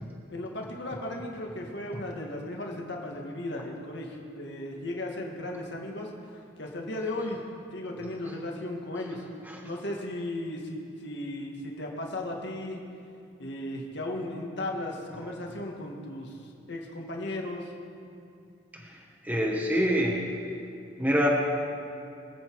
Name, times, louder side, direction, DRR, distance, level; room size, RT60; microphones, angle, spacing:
voice 1, 0.3-7.4 7.7-9.2 9.6-12.8 13.4-16.4 16.7-17.7, left 1 dB, 55° left, 0 dB, 2.0 m, -36 dB
voice 2, 18.7-20.2 21.0-21.3, equal, 10° right, -2 dB, 1.3 m, -26 dB
24.5 x 8.3 x 4.8 m, 2.6 s
head